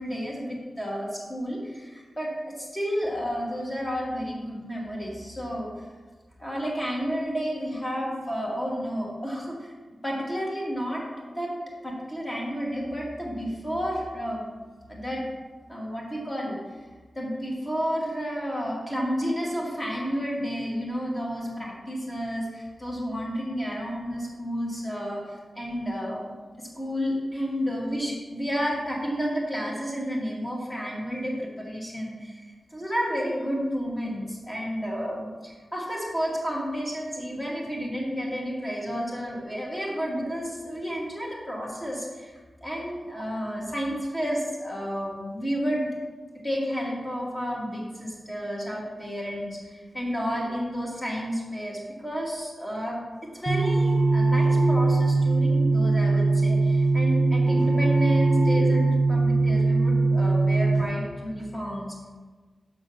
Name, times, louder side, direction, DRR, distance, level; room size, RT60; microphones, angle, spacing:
voice 1, 0.0-5.9 6.4-11.0 11.4-11.5 11.8-14.4 14.9-15.2 15.7-16.6 17.1-45.9 46.4-61.9, equal, 15° left, -4 dB, 2.1 m, -31 dB
sound 1, 53.5-60.8, right 3 dB, 30° right, 1.1 m, -21 dB
7.3 x 6.0 x 6.3 m, 1.4 s
wide cardioid pair, 170°, 0 cm